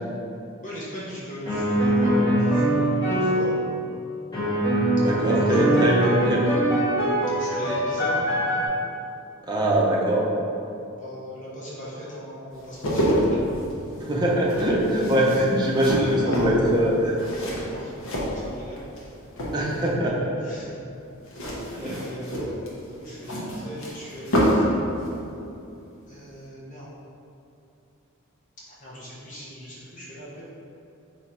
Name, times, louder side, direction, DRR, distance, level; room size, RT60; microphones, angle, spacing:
voice 1, 0.6-3.5 5.1-6.0 7.4-8.2 11.0-13.1 15.7-18.8 20.4-20.7 21.8-24.7 26.0-26.9 28.8-30.5, equal, 40° left, -7 dB, 0.9 m, -38 dB
sound 1, 1.5-3.6 4.3-8.7, right 1 dB, 20° left, 1.4 m, -22 dB
voice 2, 4.9-6.6 9.5-10.2 13.9-17.2 19.5-20.3 21.6-22.0 23.4-23.5, equal, 20° right, -4 dB, 0.6 m, -23 dB
sound 2, 12.6-19.0 19.3-19.9 21.3-24.7 25.0-25.2, equal, 70° left, 0.9 m, -27 dB
3.8 x 3.1 x 4.2 m, 2.7 s
head